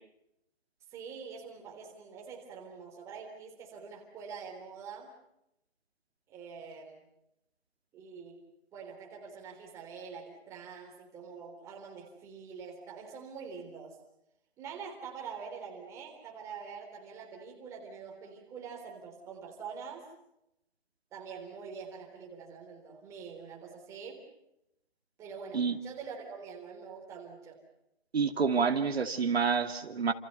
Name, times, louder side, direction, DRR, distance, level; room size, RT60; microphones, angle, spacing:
voice 1, 0.9-5.1 6.3-7.0 7.9-8.4 8.7-14.0 14.6-20.1 21.1-24.3 25.2-27.6, right 6 dB, 10° right, 0 dB, 3.6 m, -45 dB
voice 2, 28.1-30.1, right 5 dB, 75° right, 6 dB, 2.7 m, -28 dB
29.5 x 28.0 x 5.6 m, 0.81 s
hypercardioid pair, 170°, 32 cm